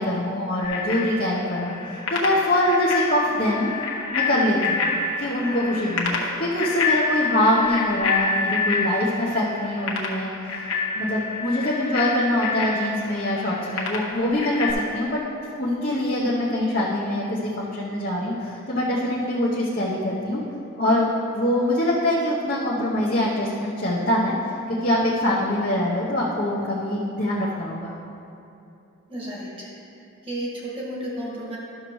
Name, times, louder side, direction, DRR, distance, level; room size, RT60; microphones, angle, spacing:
voice 1, 0.0-3.7 4.1-4.9 5.2-15.2 15.6-20.4 20.8-24.3 24.7-27.9, left 1 dB, 40° left, -7 dB, 0.9 m, -24 dB
Bicycle bell, 0.6-14.7, left 3 dB, 70° left, 1.2 m, -28 dB
voice 2, 29.1-29.7 30.2-31.6, right 1 dB, 25° right, -6 dB, 1.7 m, -32 dB
12.0 x 6.5 x 3.1 m, 2.8 s
head